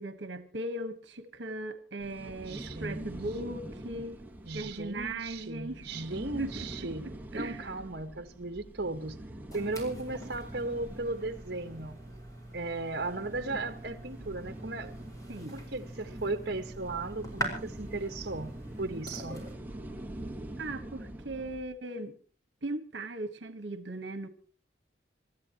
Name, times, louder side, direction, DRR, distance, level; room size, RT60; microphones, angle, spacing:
voice 1, 0.0-4.2 4.5-5.9 6.3-7.7 15.3-15.6 20.6-22.2 22.6-24.3, right 2 dB, 75° right, 1.4 m, -38 dB
sound 1, 2.0-21.6, right 1 dB, 10° right, 1.5 m, -45 dB
voice 2, 2.5-3.1 4.4-7.0 7.3-9.1 9.5-12.0 12.5-15.0 15.5-18.5 18.8-19.4, right 2 dB, 60° right, 1.4 m, -36 dB
sound 2, 9.5-19.6, equal, 20° left, 5.1 m, -44 dB
28.0 x 13.5 x 3.0 m
head